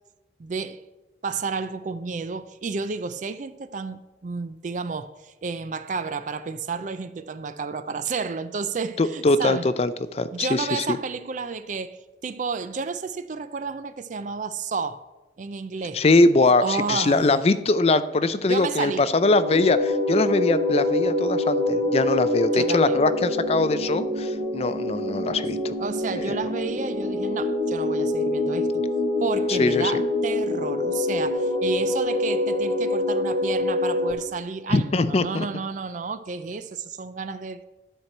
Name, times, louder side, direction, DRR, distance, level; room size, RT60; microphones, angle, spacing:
voice 1, 0.4-0.8 1.2-9.7 10.3-15.0 15.4-16.0 16.6-17.3 18.5-19.1 22.5-23.0 25.8-28.8 29.2-37.6, right 4 dB, 40° right, 0.4 m, -31 dB
voice 2, 9.0-11.0 15.9-25.7 26.1-26.4 29.5-30.0 34.7-35.5, left 2 dB, 35° left, 0.4 m, -22 dB
sound 1, 19.1-34.1, left 2 dB, 85° right, 2.3 m, -25 dB
11.5 x 4.5 x 6.5 m
head